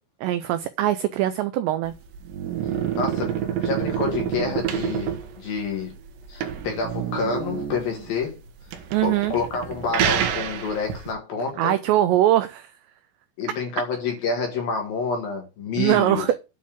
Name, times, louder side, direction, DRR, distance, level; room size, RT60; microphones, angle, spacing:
voice 1, 0.2-1.9 8.9-9.3 11.6-12.7 15.8-16.4, right 13 dB, 90° right, 2.4 m, -21 dB
sound 1, 1.9-11.1, right 9 dB, 70° right, 3.2 m, -28 dB
voice 2, 3.0-5.9 6.3-8.4 9.0-11.7 13.4-16.3, left 5 dB, 60° left, 2.9 m, -28 dB
9.0 x 4.3 x 7.1 m
omnidirectional pair, 5.7 m